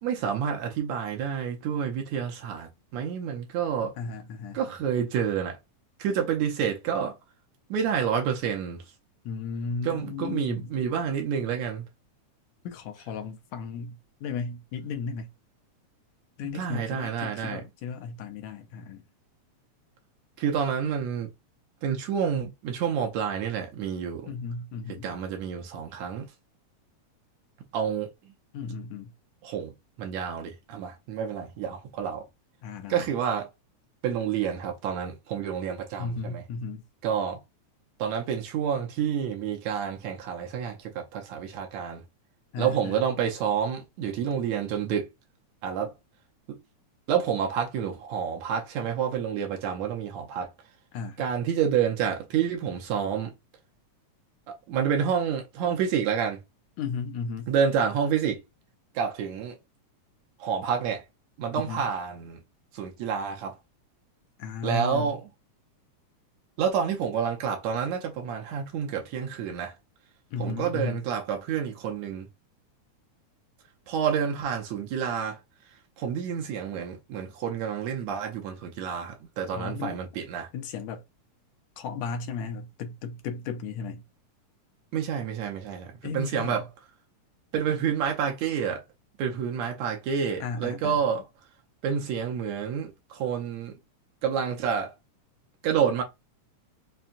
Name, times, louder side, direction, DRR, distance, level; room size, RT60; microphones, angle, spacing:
voice 1, 0.0-3.9 4.5-5.6 6.0-7.2 7.7-8.8 9.8-11.9 16.5-17.6 20.4-21.3 21.8-24.4 25.0-26.3 27.7-28.1 29.4-29.7 30.0-32.2 32.9-33.5 34.0-36.4 37.0-37.4 38.0-42.0 42.6-45.1 45.6-45.9 46.5-46.6 47.1-50.5 51.2-53.3 54.5-56.4 57.5-58.4 59.0-59.6 60.4-61.0 61.4-62.4 62.7-63.6 64.6-65.2 66.6-69.7 70.4-72.3 73.9-75.4 76.0-80.5 84.9-86.7 87.5-88.8 89.2-91.2 91.8-93.8 94.2-94.9 95.6-96.0, right 7 dB, 75° right, 1.8 m, -29 dB
voice 2, 4.0-4.6 9.3-10.7 12.6-15.3 16.4-19.0 24.3-25.1 28.5-29.1 32.6-33.0 36.0-36.8 42.5-43.0 50.9-51.2 56.8-57.5 61.6-61.8 64.4-65.2 70.3-71.0 79.5-80.0 80.5-81.0 81.8-84.0 86.0-86.7 90.4-91.0, left 5 dB, 75° left, 1.8 m, -35 dB
5.6 x 2.2 x 2.5 m
omnidirectional pair, 3.5 m